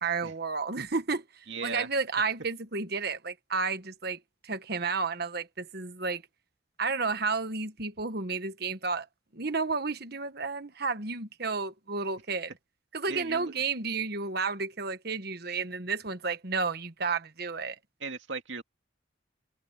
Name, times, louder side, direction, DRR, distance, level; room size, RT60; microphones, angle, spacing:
voice 1, 0.0-6.2 6.8-9.1 9.3-12.5 12.9-17.8, right 4 dB, 50° right, 1.4 m, -32 dB
voice 2, 1.5-1.9 13.1-13.5 18.0-18.6, right 4 dB, 70° right, 2.3 m, -37 dB
head